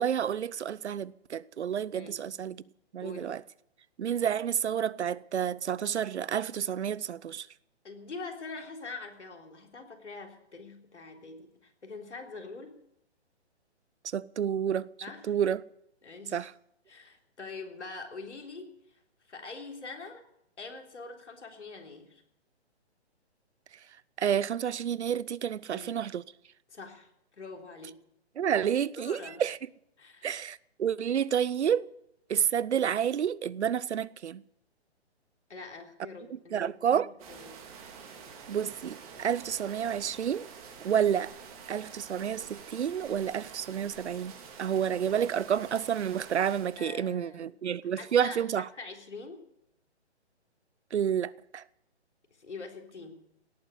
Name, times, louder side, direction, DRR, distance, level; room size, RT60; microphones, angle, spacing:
voice 1, 0.0-2.6 2.9-3.4 4.0-7.5 14.1-14.9 15.3-15.6 16.3-16.5 24.2-26.2 28.4-29.6 30.2-31.9 32.3-34.4 36.3-37.1 38.5-40.5 40.8-41.3 41.7-44.3 44.6-48.7 50.9-51.6, right 8 dB, 75° right, 0.7 m, -29 dB
voice 2, 1.9-2.3 3.0-3.4 7.8-12.8 15.0-15.4 16.0-16.5 16.9-19.0 19.3-20.2 20.6-22.2 25.7-26.0 26.7-27.1 27.4-28.0 29.0-29.4 30.0-30.3 35.5-37.6 41.4-41.5 46.8-47.5 48.0-48.5 48.8-49.4 52.3-53.2, left 3 dB, 90° left, 3.5 m, -44 dB
sound 1, 37.2-46.8, right 6 dB, 30° right, 3.0 m, -48 dB
17.5 x 9.2 x 8.3 m
hypercardioid pair, 150°, 34 cm